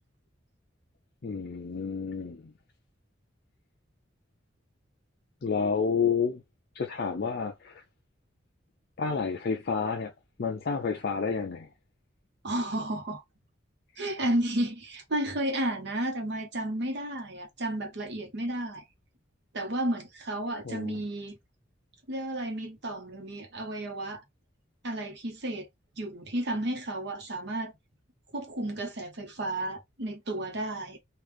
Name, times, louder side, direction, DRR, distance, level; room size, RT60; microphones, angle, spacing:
voice 1, 1.2-2.4 5.4-6.4 6.8-7.8 9.0-10.1 10.4-11.7 20.6-21.0, left 5 dB, 55° left, 0.5 m, -30 dB
voice 2, 12.4-13.2 14.0-18.8 19.5-21.3 22.1-24.2 24.8-25.7 26.0-27.7 28.3-31.0, right 1 dB, 65° right, 1.0 m, -32 dB
3.2 x 2.4 x 3.2 m
head